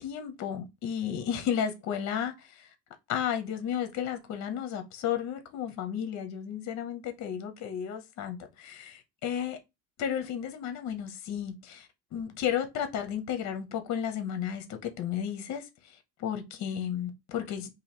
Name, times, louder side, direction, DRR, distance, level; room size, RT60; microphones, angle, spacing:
voice 1, 0.0-2.5 3.1-9.6 10.0-15.6 16.2-17.7, left 9 dB, 35° left, 0.7 m, -33 dB
2.9 x 2.7 x 4.1 m
cardioid pair, 155°, 47 cm